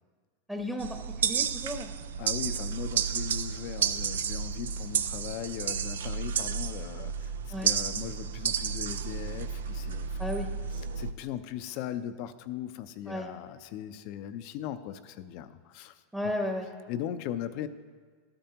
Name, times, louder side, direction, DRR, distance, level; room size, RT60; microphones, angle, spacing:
voice 1, 0.5-1.9 7.5-7.7 10.2-10.5 13.1-13.3 16.1-16.7, left 1 dB, 5° right, 3 dB, 0.9 m, -34 dB
sound 1, 0.8-11.1, right 7 dB, 85° right, 0.4 m, -32 dB
voice 2, 2.2-7.3 7.6-10.1 11.0-16.0 16.9-17.7, left 11 dB, 55° left, 12 dB, 0.5 m, -38 dB
13.0 x 8.8 x 2.9 m, 1.5 s
hypercardioid pair, 110°, 0 cm